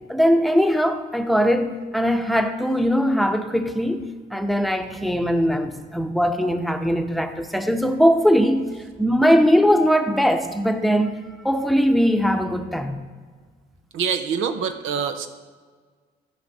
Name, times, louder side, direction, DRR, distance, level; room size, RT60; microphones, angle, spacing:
voice 1, 0.1-4.0 4.3-8.6 9.0-11.2 11.4-13.0, equal, ahead, 0.8 m, -20 dB
voice 2, 13.9-15.3, right 7 dB, 85° right, 0.7 m, -25 dB
14.0 x 5.2 x 4.0 m
cardioid pair, 90°, 20 cm